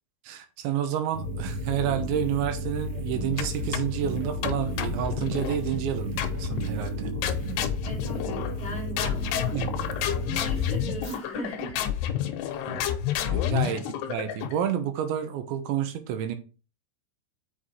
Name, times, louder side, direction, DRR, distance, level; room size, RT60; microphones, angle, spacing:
voice 1, 0.2-7.1 9.5-9.7 12.7-13.0 13.3-16.4, right 9 dB, 85° right, 3.2 m, -30 dB
sound 1, 1.1-11.2, left 1 dB, 55° right, 1.5 m, -33 dB
sound 2, 2.9-9.8, right 9 dB, 70° right, 2.7 m, -41 dB
sound 3, 3.4-4.0 4.4-5.6 6.2-6.7 7.2-8.7 9.0-14.7, left 11 dB, 80° left, 2.5 m, -30 dB
voice 2, 7.8-11.8 13.6-13.8, left 1 dB, 15° left, 1.4 m, -39 dB
6.6 x 5.7 x 4.3 m
omnidirectional pair, 5.3 m